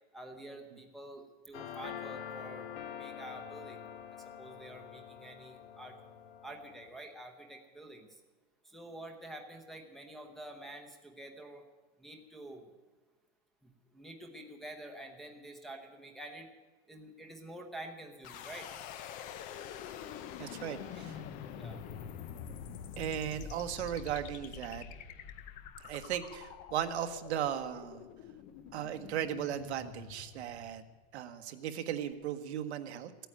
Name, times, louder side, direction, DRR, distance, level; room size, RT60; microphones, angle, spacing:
voice 1, 0.1-3.8 4.4-6.0 6.4-8.1 8.6-11.6 12.0-12.6 13.9-16.5 16.9-18.7 21.0-21.1 21.5-21.8, right 1 dB, ahead, 0 dB, 0.9 m, -48 dB
sound 1, 1.5-6.9, left 8 dB, 65° left, 1.8 m, -46 dB
sound 2, 18.2-31.2, left 8 dB, 25° left, 0.5 m, -46 dB
voice 2, 20.4-21.2 23.0-24.8 25.8-28.0 28.7-30.8 31.1-33.1, right 10 dB, 80° right, 7 dB, 1.4 m, -37 dB
16.0 x 9.1 x 8.7 m, 1.3 s
supercardioid pair, 160°, 33 cm